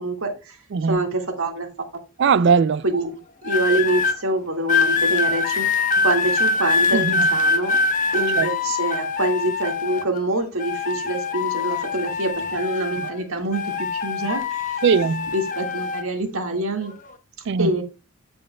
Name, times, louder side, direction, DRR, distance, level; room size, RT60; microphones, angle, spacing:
voice 1, 0.0-0.6 0.9-2.0 2.8-3.1 3.4-7.8 8.1-14.8 15.3-16.9 17.6-17.8, right 2 dB, 70° right, 1.9 m, -25 dB
voice 2, 2.2-2.8 6.9-7.3 8.4-8.5 14.8-15.3 17.5-17.7, right 5 dB, 55° right, 0.3 m, -19 dB
sound 1, 3.4-4.2 4.7-10.2 10.6-13.2 13.5-16.0 16.8-17.1, left 4 dB, 35° left, 0.9 m, -23 dB
14.0 x 5.3 x 2.2 m
head